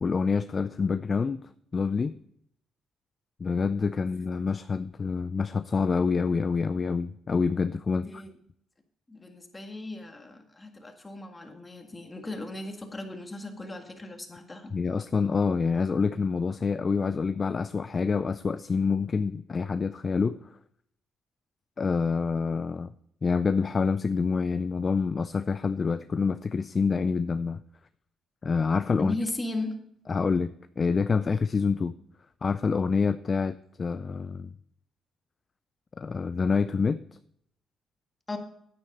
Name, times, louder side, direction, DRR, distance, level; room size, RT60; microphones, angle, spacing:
voice 1, 0.0-2.1 3.4-8.1 14.7-20.4 21.8-22.9 23.2-27.6 28.4-29.1 30.1-31.9 32.4-34.5 36.0-37.0, left 5 dB, 35° left, 13 dB, 0.4 m, -27 dB
voice 2, 9.1-14.7 29.0-29.7 38.3-38.4, left 2 dB, 20° left, 4 dB, 1.8 m, -36 dB
9.5 x 9.3 x 4.2 m, 0.71 s
cardioid pair, 90°, 0 cm